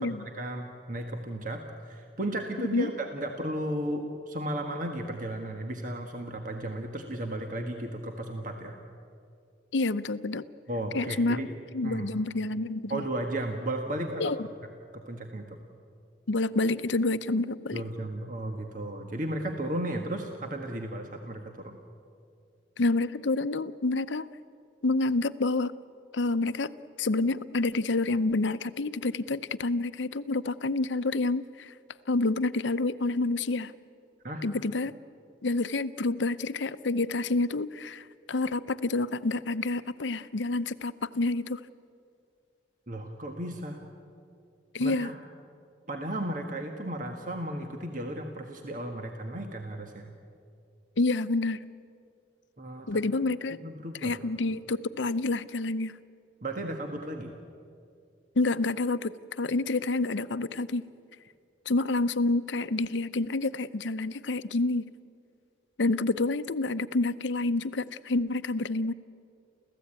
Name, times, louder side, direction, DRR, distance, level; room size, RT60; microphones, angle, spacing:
voice 1, 0.0-8.8 10.7-11.5 11.8-12.1 12.9-14.3 14.9-15.6 17.7-21.8 34.2-34.4 42.9-43.8 44.8-45.2 45.9-50.1 52.6-52.9 53.6-54.2 56.4-57.3, right 1 dB, 45° right, 3 dB, 1.5 m, -34 dB
voice 2, 9.7-10.4 10.9-11.4 11.7-13.1 14.2-14.5 16.3-17.8 22.8-24.3 24.8-25.7 26.1-26.7 27.0-31.7 32.1-33.7 34.4-34.9 35.4-41.6 44.7-45.1 51.0-51.6 52.9-53.6 54.0-55.9 58.4-60.9 61.7-64.9 65.8-68.9, left 2 dB, 90° left, 14 dB, 0.7 m, -28 dB
28.5 x 15.0 x 8.9 m, 2.4 s
head